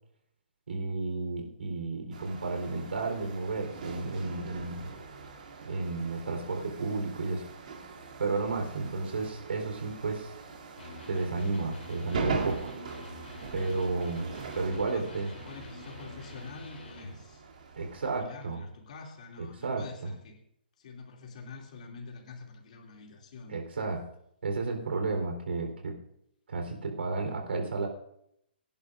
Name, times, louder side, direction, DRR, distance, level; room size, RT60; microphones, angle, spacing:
voice 1, 0.7-4.9 5.6-7.5 8.2-10.3 11.1-12.7 13.5-14.3 14.5-15.3 17.8-18.6 19.4-19.8 23.5-24.0 24.4-26.0 26.5-27.9, right 3 dB, 80° right, 3 dB, 3.8 m, -32 dB
sound 1, 2.1-18.2, right 4 dB, 50° right, 2.8 m, -41 dB
Electric guitar, 10.7-17.2, left 4 dB, 75° left, 3.2 m, -48 dB
voice 2, 14.5-17.5 18.0-20.4 20.8-23.6, left 4 dB, 40° left, 1 dB, 2.6 m, -46 dB
24.5 x 11.0 x 2.6 m, 0.74 s
hypercardioid pair, 175°, 6 cm